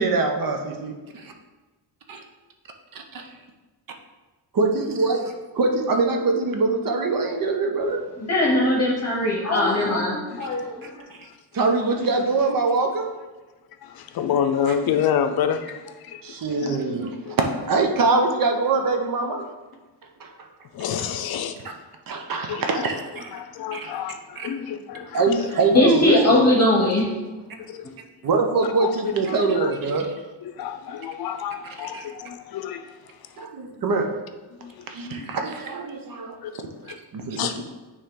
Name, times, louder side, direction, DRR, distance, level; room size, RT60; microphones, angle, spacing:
voice 1, 0.0-1.3 2.1-2.2 2.9-3.3 4.5-8.1 11.1-11.3 11.5-13.1 16.2-17.2 17.6-19.5 20.2-20.3 21.0-21.1 22.1-23.3 23.7-23.9 24.4-24.5 25.1-26.4 28.2-30.2 31.8-32.1 33.4-34.2 34.9-36.4 37.1-37.6, right 3 dB, 55° right, 0.8 m, -24 dB
voice 2, 8.2-10.9 25.3-25.4 25.7-27.1, left 1 dB, 40° left, 1.0 m, -20 dB
voice 3, 13.8-16.4 16.6-16.8 17.2-17.4 20.7-21.7 22.5-23.0 23.3-25.5 27.7-27.8 28.6-28.9 29.3-29.7 30.4-33.0 34.6-35.3 36.4-37.0 37.4-37.6, left 8 dB, 60° left, 0.6 m, -29 dB
9.2 x 3.2 x 3.7 m
cardioid pair, 150°, 42 cm